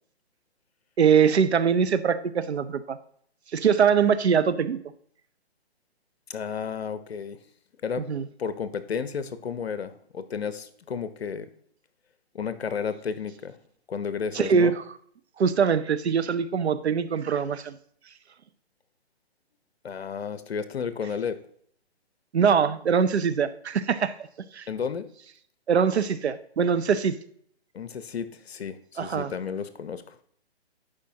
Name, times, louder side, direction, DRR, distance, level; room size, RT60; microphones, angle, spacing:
voice 1, 1.0-3.0 3.5-4.8 8.1-8.3 14.3-14.8 15.4-17.8 22.3-24.2 24.5-24.7 25.7-27.2 29.0-29.3, right 6 dB, 80° right, 13 dB, 0.7 m, -23 dB
voice 2, 6.3-7.4 7.8-8.1 8.4-11.5 12.3-13.6 13.9-14.7 19.8-21.4 24.7-25.1 27.7-30.2, left 6 dB, 70° left, 12 dB, 0.8 m, -32 dB
11.5 x 5.0 x 2.8 m, 0.62 s
figure-of-eight pair, 140°, 32 cm